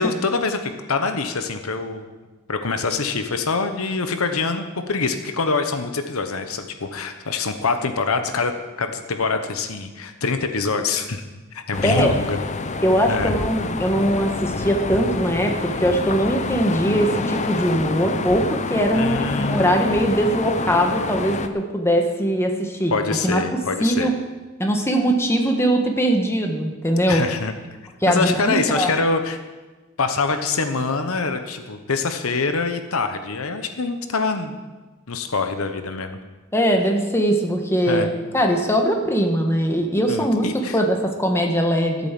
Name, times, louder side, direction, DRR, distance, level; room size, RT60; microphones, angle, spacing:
voice 1, 0.0-2.1 2.5-8.5 8.8-11.2 11.5-12.4 13.1-13.3 18.9-19.9 22.9-24.1 27.1-27.5 28.1-29.4 30.0-34.6 35.1-36.2 37.9-38.1 40.1-40.8, left 4 dB, 70° left, 8 dB, 1.0 m, -25 dB
sound 1, 11.7-21.5, left 3 dB, 35° left, 0.7 m, -27 dB
voice 2, 11.8-12.1 12.8-22.9 23.2-23.4 23.8-24.1 24.6-27.2 28.0-28.9 36.5-38.1 38.3-42.1, equal, 10° left, 3 dB, 1.5 m, -21 dB
14.0 x 8.3 x 7.5 m, 1.3 s
head